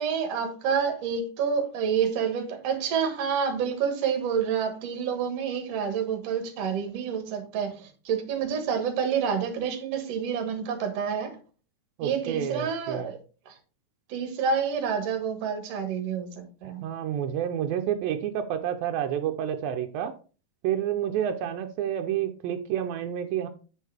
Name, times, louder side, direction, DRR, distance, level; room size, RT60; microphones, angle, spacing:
voice 1, 0.0-11.4 12.0-13.2 13.5-13.6 14.1-16.8, right 6 dB, 55° right, 2.1 m, -28 dB
voice 2, 12.0-13.1 16.8-20.1 20.6-23.5, right 10 dB, 85° right, 2.5 m, -29 dB
8.3 x 6.5 x 3.4 m
omnidirectional pair, 4.1 m